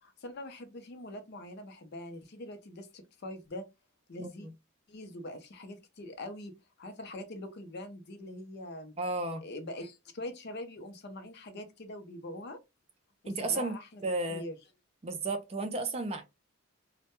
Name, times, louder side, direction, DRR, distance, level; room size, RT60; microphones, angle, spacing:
voice 1, 0.0-3.7 4.1-4.5 4.9-8.9 9.4-12.6 13.2-14.0 14.3-14.6, left 1 dB, 50° left, 0.5 m, -43 dB
voice 2, 4.2-4.5 9.0-9.4 13.3-13.7 14.0-14.4 15.0-16.2, right 2 dB, 30° right, 0.4 m, -33 dB
2.1 x 2.1 x 2.8 m
head